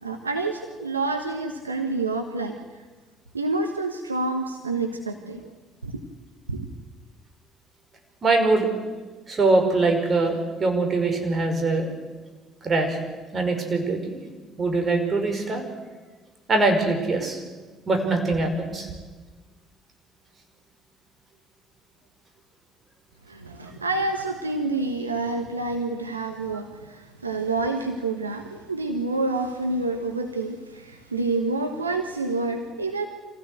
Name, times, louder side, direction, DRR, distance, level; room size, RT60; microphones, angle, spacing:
voice 1, 0.0-2.6 3.3-5.5 5.8-5.9 6.5-6.7 23.3-33.1, right 3 dB, 90° right, 4 dB, 1.3 m, -28 dB
voice 2, 8.2-8.7 9.3-11.9 12.6-13.0 13.3-14.2 14.6-15.6 16.5-17.4 17.9-18.9, right 3 dB, 35° right, 4 dB, 5.4 m, -22 dB
26.0 x 16.0 x 8.0 m, 1.4 s
figure-of-eight pair, 50°, 0 cm